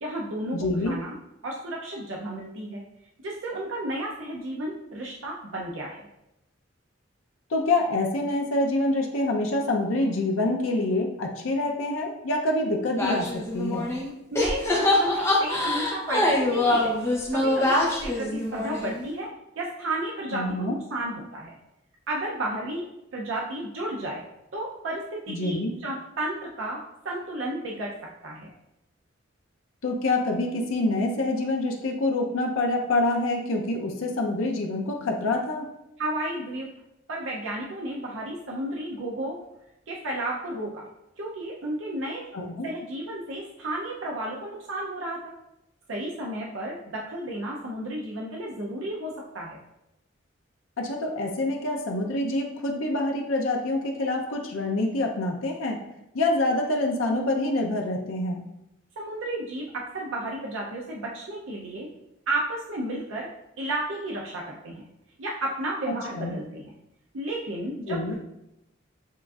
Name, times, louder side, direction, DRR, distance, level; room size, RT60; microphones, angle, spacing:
voice 1, 0.0-1.1 1.4-2.8 3.2-6.1 14.3-17.0 17.3-19.3 19.6-21.5 22.1-22.9 23.1-24.2 24.5-26.8 27.0-27.9 28.2-28.5 36.0-36.7 37.1-39.4 39.9-40.8 41.2-42.2 42.6-45.3 45.9-49.6 59.0-61.9 62.3-63.3 63.6-64.8 65.2-66.7 67.1-68.1, right 1 dB, 75° right, -2 dB, 0.6 m, -32 dB
voice 2, 0.5-1.0 7.5-13.9 20.3-20.7 25.3-25.7 29.8-35.7 42.3-42.7 50.8-55.8 56.1-58.4 65.9-66.4 67.9-68.1, left 2 dB, 90° left, 2 dB, 0.6 m, -26 dB
sound 1, 13.0-14.1 14.4-19.1, left 1 dB, 15° left, 0.6 m, -24 dB
7.2 x 2.5 x 2.3 m, 0.86 s
head